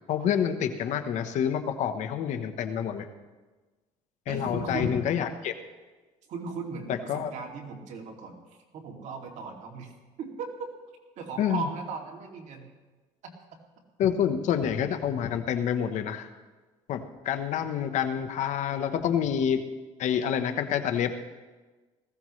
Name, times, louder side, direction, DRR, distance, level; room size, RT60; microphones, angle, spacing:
voice 1, 0.1-3.1 4.3-5.5 6.9-7.3 11.4-11.7 14.0-16.3 16.9-19.6 20.0-21.1, left 8 dB, 60° left, 8 dB, 1.1 m, -27 dB
voice 2, 4.3-5.0 6.3-9.9 10.2-10.7 11.2-12.7 13.2-13.3, right 4 dB, 60° right, 1 dB, 2.6 m, -37 dB
19.5 x 15.5 x 3.3 m, 1.3 s
cardioid pair, 115°, 14 cm